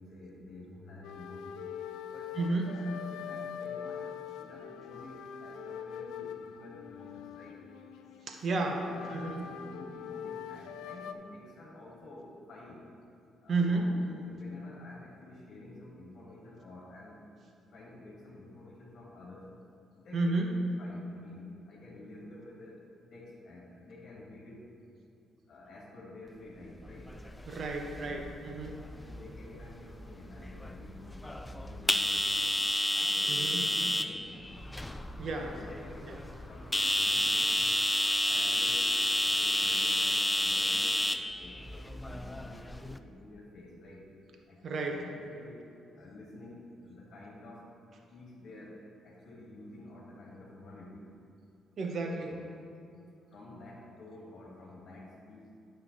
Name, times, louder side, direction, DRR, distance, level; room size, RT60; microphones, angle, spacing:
voice 1, 0.0-1.7 2.0-7.6 8.7-12.8 13.4-17.2 17.7-19.5 19.9-22.8 23.1-24.7 25.5-27.1 27.9-28.3 28.9-32.6 32.9-34.4 35.3-37.7 38.3-44.0 44.5-45.6 45.9-47.7 48.1-51.0 52.2-52.4 53.3-55.5, left 2 dB, 55° left, -5 dB, 2.0 m, -50 dB
sound 1, 1.0-11.1, left 8 dB, 90° left, 0.4 m, -43 dB
voice 2, 2.4-2.8 8.3-9.5 13.5-14.0 20.1-20.6 27.5-28.8 33.3-33.7 35.2-35.5 36.0-36.2 44.6-45.0 51.8-52.4, right 3 dB, 55° right, 2 dB, 1.0 m, -32 dB
sound 2, 26.9-43.0, left 1 dB, 10° left, 0.4 m, -31 dB
9.6 x 5.6 x 4.1 m, 2.7 s
cardioid pair, 90°, 0 cm